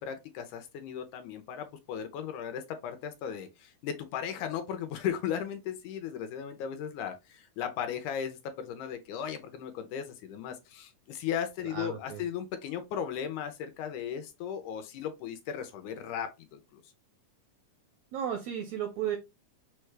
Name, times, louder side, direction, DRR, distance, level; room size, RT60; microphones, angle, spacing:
voice 1, 0.0-16.8, left 8 dB, 80° left, 1.9 m, -36 dB
voice 2, 11.7-12.2 18.1-19.2, right 9 dB, 85° right, 1.6 m, -34 dB
6.3 x 2.2 x 3.1 m
omnidirectional pair, 3.8 m